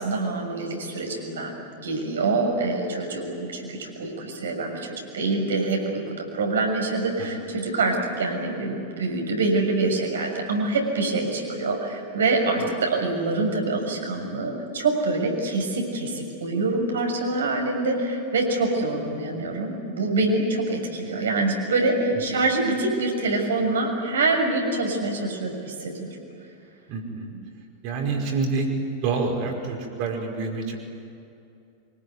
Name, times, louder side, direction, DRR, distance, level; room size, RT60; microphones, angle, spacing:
voice 1, 0.0-26.1, right 2 dB, 65° right, 2 dB, 6.6 m, -25 dB
voice 2, 26.9-27.3 27.8-28.7 29.0-30.8, right 4 dB, 45° right, 2 dB, 5.4 m, -27 dB
25.5 x 23.5 x 9.7 m, 2.6 s
figure-of-eight pair, 90°, 0 cm